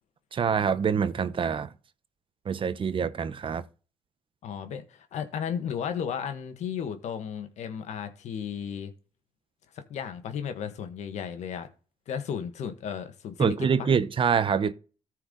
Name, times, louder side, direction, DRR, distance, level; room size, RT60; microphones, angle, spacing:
voice 1, 0.3-1.7 2.4-3.6 13.4-14.7, right 6 dB, 45° right, 0.9 m, -25 dB
voice 2, 4.4-8.9 9.7-11.7 12.1-13.9, left 8 dB, 75° left, 1.5 m, -34 dB
14.0 x 4.7 x 3.9 m
cardioid pair, 75°, 12 cm